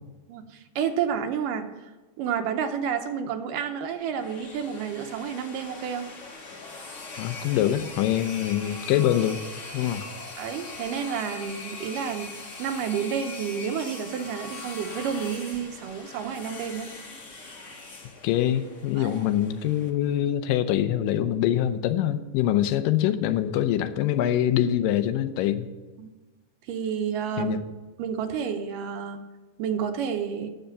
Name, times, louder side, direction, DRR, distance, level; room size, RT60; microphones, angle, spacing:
voice 1, 0.3-1.7 2.2-6.1 10.0-10.1 10.4-16.9 19.0-19.2 26.0-26.1 26.7-27.7 28.0-29.2 29.6-30.5, right 7 dB, 75° right, 7 dB, 2.4 m, -30 dB
sound 1, 4.0-19.9, left 3 dB, 60° left, 0.7 m, -41 dB
voice 2, 7.2-9.4 9.7-10.1 18.2-25.7 27.4-27.6, left 11 dB, 80° left, 10 dB, 2.3 m, -24 dB
10.0 x 7.9 x 6.7 m, 1.2 s
omnidirectional pair, 3.9 m